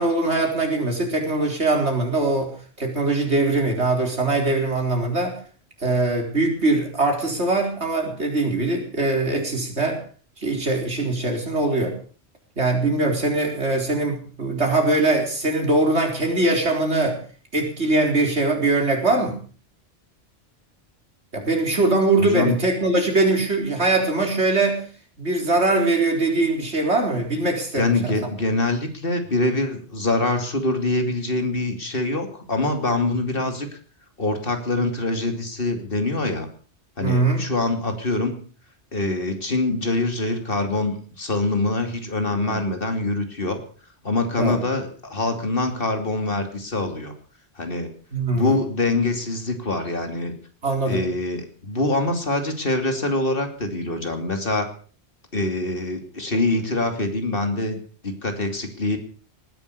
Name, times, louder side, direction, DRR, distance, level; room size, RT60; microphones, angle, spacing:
voice 1, 0.0-2.5 2.8-5.4 5.8-10.0 10.4-11.9 12.6-17.2 17.5-19.4 21.3-24.8 25.2-28.1 37.0-37.4 42.3-42.6 44.4-44.6 48.1-48.6 50.6-51.0, right 2 dB, 80° right, 2 dB, 4.7 m, -22 dB
voice 2, 22.2-22.6 27.7-33.7 34.2-36.5 37.0-38.4 38.9-43.6 44.0-47.1 47.6-47.9 48.3-50.3 50.9-54.7 55.3-57.8 58.0-59.0, left 2 dB, 55° left, 6 dB, 3.0 m, -24 dB
19.0 x 11.0 x 6.8 m, 0.42 s
omnidirectional pair, 1.1 m